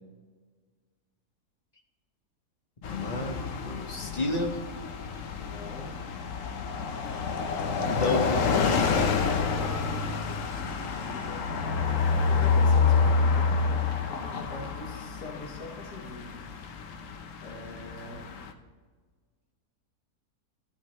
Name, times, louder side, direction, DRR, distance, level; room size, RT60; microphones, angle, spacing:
sound 1, 2.8-18.5, left 5 dB, 60° left, 1.1 m, -28 dB
voice 1, 2.8-4.6 7.9-8.9, left 2 dB, 35° left, 4 dB, 0.8 m, -31 dB
voice 2, 5.3-6.0 9.2-10.5 10.9-11.5 12.3-16.5 17.4-18.3, left 2 dB, 80° left, 0 dB, 2.0 m, -43 dB
13.0 x 8.5 x 3.2 m, 1.5 s
omnidirectional pair, 1.7 m